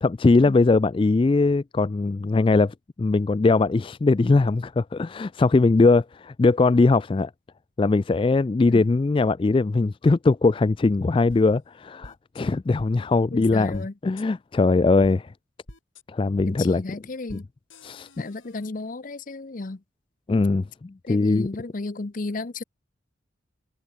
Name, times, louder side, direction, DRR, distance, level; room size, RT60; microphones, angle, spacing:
voice 1, 0.0-7.3 7.8-15.3 16.1-16.8 17.3-17.4 17.8-18.1 20.3-21.5, left 3 dB, 25° left, 0.3 m, -21 dB
sound 1, 11.3-11.4 12.0-12.4 12.8-12.9 13.7-13.9 14.2-14.3 15.0-15.1 15.7-16.0 16.4-16.5 17.3-17.4 17.7-18.7, left 1 dB, 85° left, 6.6 m, -45 dB
voice 2, 13.3-13.9 16.5-17.5 18.2-19.8 21.0-22.6, left 3 dB, 45° left, 0.7 m, -33 dB
head